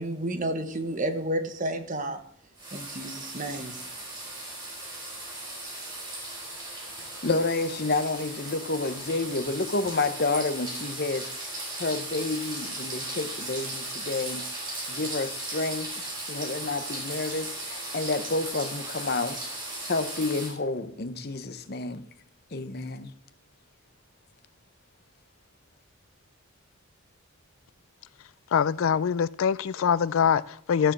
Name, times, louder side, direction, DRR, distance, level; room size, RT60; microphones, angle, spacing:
voice 1, 0.0-2.2 2.7-3.8, right 1 dB, 35° right, 1.1 m, -31 dB
sound 1, 2.6-20.5, right 1 dB, 20° right, 3.8 m, -37 dB
voice 2, 7.2-11.3 11.8-14.4 14.9-19.4 19.9-22.0 22.5-23.1, left 3 dB, 45° left, 0.8 m, -29 dB
voice 3, 28.5-30.9, left 7 dB, 70° left, 0.3 m, -24 dB
14.5 x 5.0 x 7.3 m
head